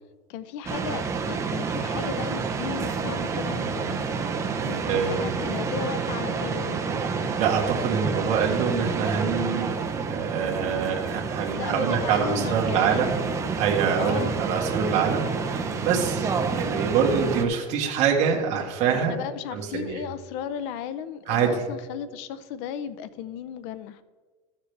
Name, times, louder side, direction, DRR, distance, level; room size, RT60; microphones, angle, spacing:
voice 1, 0.3-4.1 4.6-6.9 11.6-13.1 14.0-14.4 18.9-24.0, left 9 dB, 65° left, 13 dB, 0.6 m, -35 dB
sound 1, 0.7-17.5, right 5 dB, 20° right, 0.8 m, -29 dB
voice 2, 4.9-5.3 7.4-9.7 10.1-13.2 13.5-19.2 19.5-20.0 21.3-21.6, right 6 dB, 45° right, -1 dB, 1.6 m, -25 dB
13.5 x 7.3 x 3.3 m, 1.4 s
supercardioid pair, 145°, 16 cm